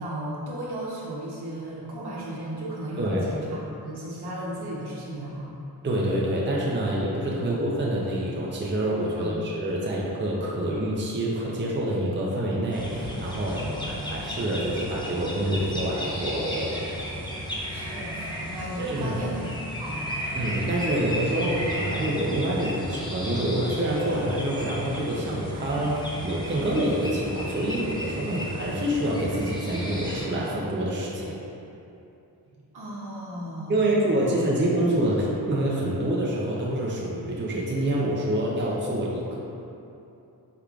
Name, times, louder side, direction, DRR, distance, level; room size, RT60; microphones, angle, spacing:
voice 1, 0.0-5.5 7.2-7.6 9.1-9.5 13.5-14.2 17.7-19.5 19.8-20.2 32.7-33.8, right 1 dB, 70° right, -5 dB, 0.9 m, -35 dB
voice 2, 5.8-16.8 18.8-19.2 20.3-31.3 33.7-39.4, right 1 dB, 30° right, -4 dB, 0.6 m, -27 dB
sound 1, 12.7-30.3, equal, 10° left, 0.6 m, -34 dB
4.6 x 3.5 x 2.4 m, 2.7 s
cardioid pair, 75°, 41 cm